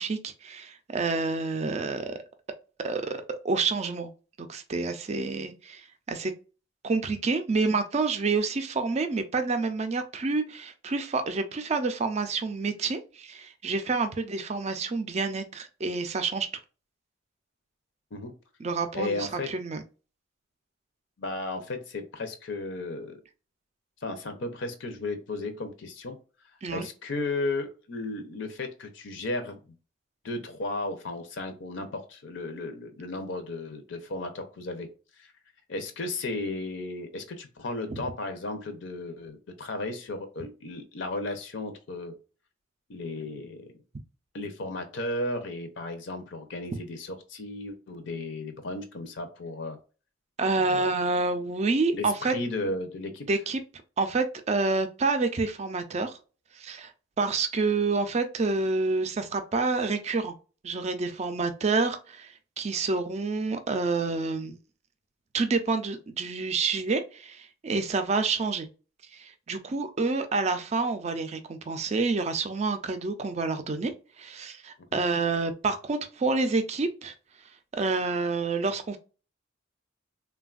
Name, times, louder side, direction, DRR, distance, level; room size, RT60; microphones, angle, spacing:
voice 1, 0.0-2.1 2.8-4.1 4.5-6.3 6.8-16.5 18.6-19.8 26.6-26.9 50.4-52.3 53.3-53.6 54.0-56.2 56.5-56.9 57.2-60.3 60.6-64.6 65.3-68.7 69.1-77.1 77.7-79.0, right 3 dB, 35° right, 9 dB, 0.4 m, -28 dB
voice 2, 18.9-19.5 21.2-23.2 24.0-26.2 26.7-29.6 30.2-34.9 35.2-35.3 35.7-42.2 42.9-43.7 44.3-49.8 50.6-50.9 51.9-53.3 74.9-75.0, left 2 dB, 60° left, 7 dB, 0.5 m, -34 dB
3.3 x 2.2 x 2.3 m, 0.35 s
head